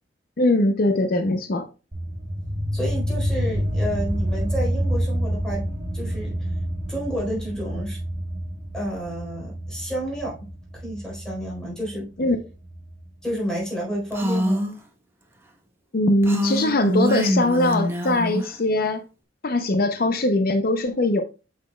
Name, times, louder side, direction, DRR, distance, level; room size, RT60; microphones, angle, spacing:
voice 1, 0.4-1.7 12.2-12.4 15.9-19.0 19.4-21.2, left 1 dB, 55° left, 0.7 m, -21 dB
sound 1, 1.9-13.0, equal, 50° right, 4.4 m, -28 dB
voice 2, 2.7-5.7 5.9-6.5 6.9-8.0 8.7-10.4 10.7-12.1 13.2-14.7, equal, 5° left, 4.1 m, -30 dB
Female speech woman speaking, 14.1-14.7 16.2-18.5, equal, 15° right, 1.1 m, -24 dB
8.0 x 6.6 x 2.3 m
head